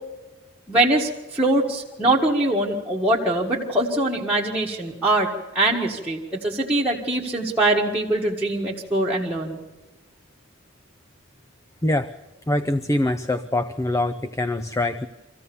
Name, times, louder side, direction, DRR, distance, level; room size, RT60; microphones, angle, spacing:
voice 1, 0.7-5.3 5.5-9.6, right 1 dB, 5° right, -5 dB, 1.8 m, -22 dB
voice 2, 12.5-15.1, left 1 dB, 15° left, 12 dB, 0.5 m, -24 dB
25.0 x 15.5 x 7.0 m, 1.2 s
head